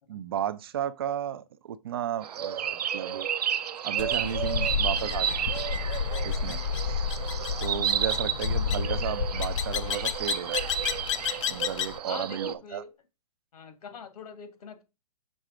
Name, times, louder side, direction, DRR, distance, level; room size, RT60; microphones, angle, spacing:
voice 1, 0.1-3.3 3.8-5.5 6.2-6.6 7.6-10.7 11.5-12.8, right 10 dB, 40° right, 0.4 m, -34 dB
sound 1, 2.2-12.5, right 9 dB, 80° right, 0.6 m, -32 dB
sound 2, 4.0-12.0, left 6 dB, 50° left, 0.5 m, -30 dB
voice 2, 8.0-8.5 12.1-12.9 13.5-14.8, left 5 dB, 70° left, 1.6 m, -43 dB
6.1 x 3.3 x 4.9 m
hypercardioid pair, 165°, 20 cm